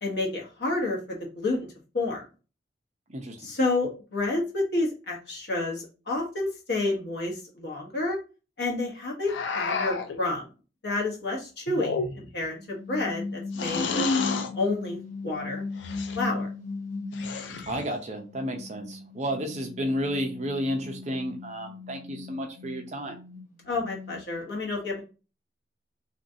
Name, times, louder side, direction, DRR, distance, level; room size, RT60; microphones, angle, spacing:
voice 1, 0.0-1.7 1.9-2.2 3.4-8.2 8.6-10.5 10.8-14.1 14.5-15.6 15.9-16.5 23.7-25.0, left 2 dB, 60° left, -1 dB, 1.1 m, -30 dB
sound 1, 9.3-10.2 11.7-12.4 13.5-14.5 15.8-16.2 17.1-17.8, left 4 dB, 80° left, 0.4 m, -30 dB
sound 2, 12.6-17.8 18.2-24.4, left 3 dB, 45° left, 0.9 m, -38 dB
voice 2, 17.7-23.2, equal, 40° right, 3 dB, 0.6 m, -32 dB
3.0 x 2.6 x 2.6 m, 0.33 s
head